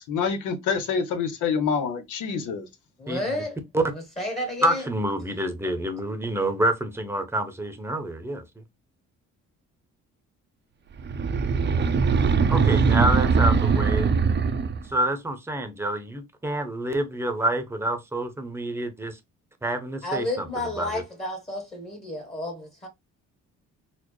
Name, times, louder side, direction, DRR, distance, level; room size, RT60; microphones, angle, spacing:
voice 1, 0.1-2.6, left 6 dB, 80° left, 0.9 m, -26 dB
voice 2, 3.0-3.6 3.8-4.8 20.0-22.9, left 1 dB, 20° left, 1.2 m, -31 dB
voice 3, 4.6-8.4 12.5-14.1 14.9-19.2 19.6-20.5 20.8-21.0, right 1 dB, 10° right, 0.8 m, -27 dB
sound 1, 11.0-14.9, right 5 dB, 35° right, 0.5 m, -21 dB
4.2 x 2.0 x 3.1 m
cardioid pair, 90°, 30 cm